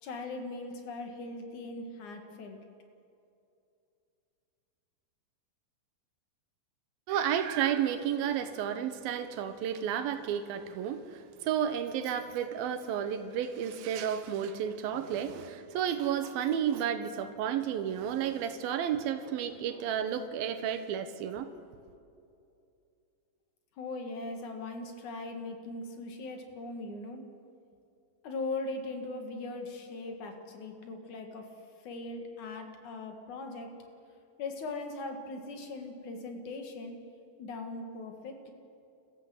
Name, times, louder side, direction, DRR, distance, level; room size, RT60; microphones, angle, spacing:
voice 1, 0.0-2.6 23.8-27.2 28.2-31.5 31.8-33.7 34.4-37.0 37.4-38.5, left 3 dB, 60° left, 4 dB, 3.1 m, -40 dB
voice 2, 7.1-21.5, right 9 dB, 85° right, 9 dB, 2.7 m, -32 dB
27.5 x 14.5 x 7.8 m, 2.6 s
omnidirectional pair, 4.2 m